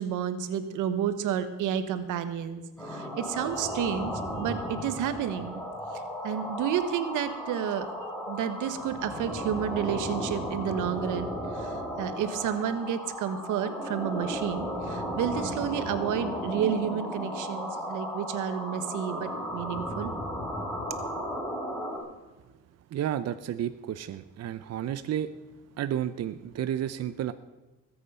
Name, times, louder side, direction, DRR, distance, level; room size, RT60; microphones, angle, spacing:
voice 1, 0.0-5.6 5.9-7.9 8.3-20.1, right 9 dB, 90° right, 11 dB, 1.3 m, -31 dB
sound 1, 2.8-22.0, equal, 5° left, 4.7 m, -35 dB
voice 2, 22.9-25.3 25.8-27.3, right 10 dB, 55° right, 12 dB, 0.7 m, -31 dB
20.5 x 8.6 x 5.6 m, 1.2 s
cardioid pair, 90°, 30 cm